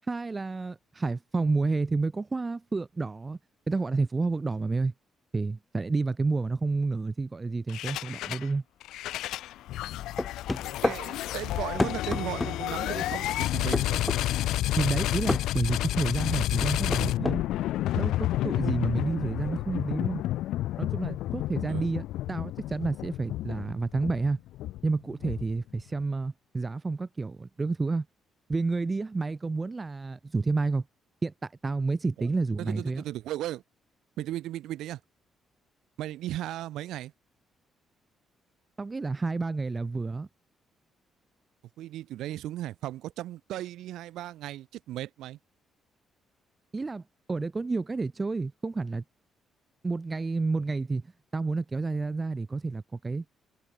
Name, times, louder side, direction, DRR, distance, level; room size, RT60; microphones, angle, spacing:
voice 1, 0.0-3.4 3.7-4.9 5.3-8.6 14.8-17.4 18.0-20.2 20.8-24.4 24.8-28.1 28.5-30.9 31.2-33.0 38.8-40.3 46.7-47.0 47.3-49.0 49.8-53.2, right 3 dB, 25° right, 5.4 m, -30 dB
sound 1, 7.7-8.5 8.8-25.8, left 14 dB, 85° left, 0.5 m, -30 dB
sound 2, 10.2-11.0 11.8-12.6 13.7-14.2 15.3-15.5 16.6-17.4, left 2 dB, 15° left, 1.8 m, -28 dB
voice 2, 10.6-14.3 21.7-21.9 32.6-33.6 34.2-35.0 36.0-37.1 41.8-45.4, right 14 dB, 85° right, 1.7 m, -36 dB
cardioid pair, 90°, 0 cm